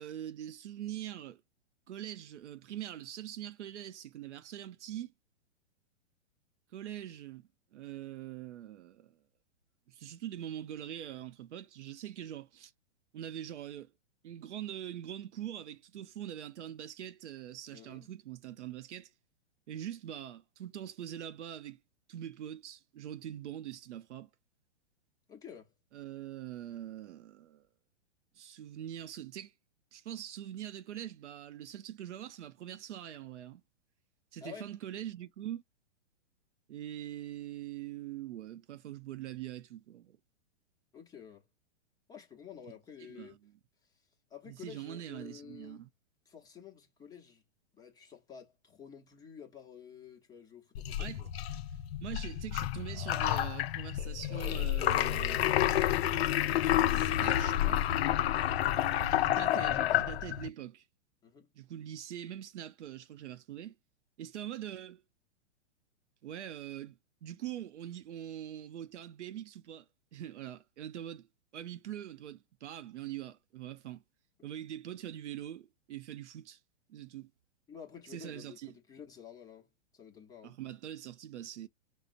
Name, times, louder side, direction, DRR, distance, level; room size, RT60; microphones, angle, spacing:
voice 1, 0.0-1.4 1.9-5.1 6.7-9.2 9.9-12.7 13.1-13.9 14.2-19.1 19.7-21.8 22.1-24.3 25.9-27.6 28.3-29.5 29.9-33.6 34.3-35.6 36.7-40.2 43.1-43.4 44.5-45.9 51.0-51.2 52.0-55.8 56.8-57.9 59.0-60.8 61.6-63.8 64.2-65.0 66.2-69.9 70.1-71.3 71.5-74.0 74.4-76.6 76.9-77.3 78.1-78.7 80.4-81.7, right 11 dB, 85° right, 0.6 m, -43 dB
voice 2, 17.7-18.1 25.3-25.7 34.4-34.7 40.9-41.5 42.1-43.4 43.8-45.8 46.3-47.4 47.7-51.3 58.6-58.8 61.2-61.5 77.7-80.6, left 8 dB, 10° left, 0.7 m, -51 dB
sound 1, 50.7-60.5, left 12 dB, 65° left, 0.5 m, -29 dB
5.2 x 2.0 x 2.5 m
hypercardioid pair, 135°, 34 cm